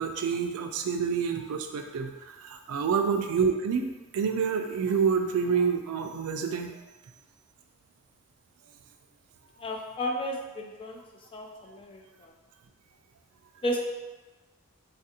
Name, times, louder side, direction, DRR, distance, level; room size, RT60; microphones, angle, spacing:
voice 1, 0.0-6.8, right 6 dB, 75° right, 5 dB, 0.3 m, -28 dB
voice 2, 9.6-11.0 11.3-12.3 13.6-13.8, left 1 dB, 25° left, 1 dB, 0.3 m, -33 dB
3.3 x 2.4 x 2.8 m, 1.1 s
head